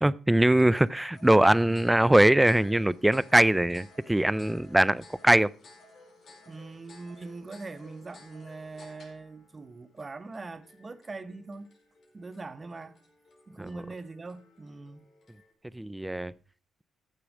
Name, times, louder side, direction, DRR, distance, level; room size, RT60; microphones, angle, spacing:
voice 1, 0.0-5.5 13.6-13.7 15.7-16.3, right 1 dB, 10° right, 0.4 m, -22 dB
sound 1, 0.7-15.5, left 2 dB, 50° left, 4.9 m, -56 dB
voice 2, 6.5-11.7 12.1-13.0 13.5-15.0, right 3 dB, 30° right, 0.8 m, -42 dB
14.0 x 6.7 x 5.0 m
cardioid pair, 90°, 0 cm